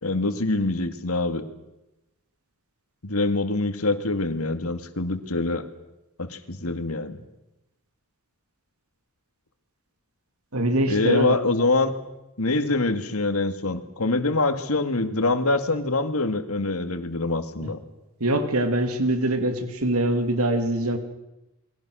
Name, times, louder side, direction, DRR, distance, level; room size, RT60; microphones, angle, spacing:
voice 1, 0.0-1.5 3.0-5.7 6.2-7.2 10.9-12.0 12.4-17.8, left 2 dB, 85° left, 8 dB, 2.2 m, -25 dB
voice 2, 10.5-11.3 17.6-17.7 18.2-21.0, right 1 dB, 85° right, 7 dB, 2.7 m, -23 dB
29.0 x 22.5 x 6.4 m, 0.92 s
head